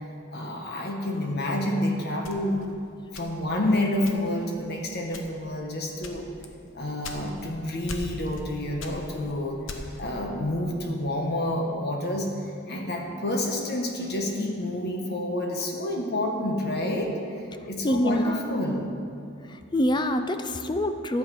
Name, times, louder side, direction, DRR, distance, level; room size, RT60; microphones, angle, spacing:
voice 1, 0.3-2.6 3.1-6.3 6.7-9.6 10.0-12.3 12.7-17.2 17.7-18.9, left 1 dB, 55° left, 1 dB, 1.2 m, -28 dB
sound 1, 2.2-3.6 4.0-4.5 5.1-5.5 6.0-7.5 7.9-8.5 8.8-10.1, left 2 dB, 85° left, 1.0 m, -39 dB
voice 2, 17.8-18.3 19.7-21.2, left 1 dB, 25° left, 8 dB, 0.5 m, -25 dB
12.0 x 7.9 x 5.4 m, 2.6 s
head